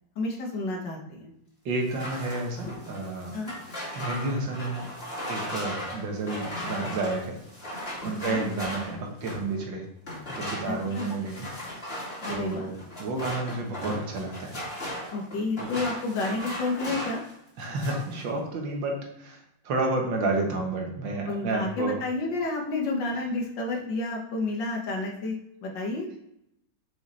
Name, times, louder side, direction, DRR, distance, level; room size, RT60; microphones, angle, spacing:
voice 1, 0.2-1.3 3.3-3.5 8.3-8.4 10.7-11.1 12.2-12.8 15.1-17.2 21.2-26.2, left 2 dB, 80° left, -1 dB, 2.0 m, -30 dB
voice 2, 1.7-3.4 4.0-4.9 5.3-7.4 7.6-9.9 10.4-11.5 12.3-15.1 15.6-15.8 17.6-21.9, right 2 dB, 85° right, 1 dB, 2.1 m, -31 dB
sound 1, 1.8-9.5 10.0-17.3 17.6-18.2, left 1 dB, 30° left, 2.6 m, -37 dB
5.8 x 5.2 x 4.2 m, 0.80 s
omnidirectional pair, 2.0 m